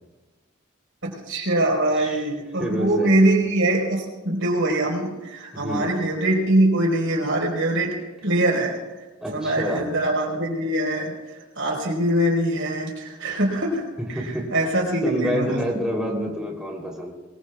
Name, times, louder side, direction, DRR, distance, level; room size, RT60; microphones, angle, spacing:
voice 1, 1.0-8.0 8.2-8.8 9.3-15.6, right 1 dB, 80° right, 0 dB, 4.4 m, -23 dB
voice 2, 2.6-3.2 5.5-5.9 9.2-9.9 14.1-14.4 15.0-17.1, equal, 5° right, -2 dB, 3.2 m, -28 dB
23.5 x 20.5 x 2.4 m, 1.2 s
head